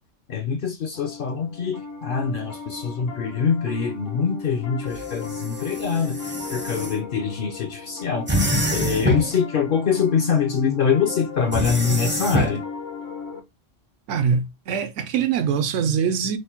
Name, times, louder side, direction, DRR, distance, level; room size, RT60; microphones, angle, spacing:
voice 1, 0.3-8.3 8.7-12.6, left 6 dB, 60° left, 0.6 m, -24 dB
Piano, 0.9-13.4, left 5 dB, 90° left, 1.6 m, -36 dB
sound 1, 4.9-6.9 8.3-9.4 11.5-12.6, equal, 15° right, 0.4 m, -26 dB
voice 2, 14.1-16.4, right 7 dB, 80° right, 0.9 m, -23 dB
3.2 x 2.1 x 4.2 m
omnidirectional pair, 1.3 m